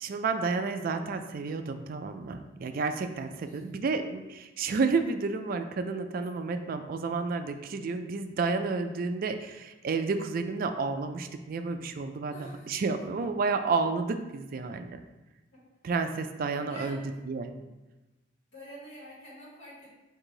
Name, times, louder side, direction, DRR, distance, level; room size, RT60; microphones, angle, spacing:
voice 1, 0.0-15.0 15.8-17.0 17.3-17.5, right 4 dB, 50° right, 8 dB, 0.3 m, -31 dB
voice 2, 3.1-3.6 12.3-12.7 15.5-15.6 15.9-16.0 16.5-17.2 17.5-17.6 18.5-19.9, equal, 85° left, -8 dB, 1.5 m, -47 dB
4.6 x 2.6 x 3.8 m, 1.1 s
head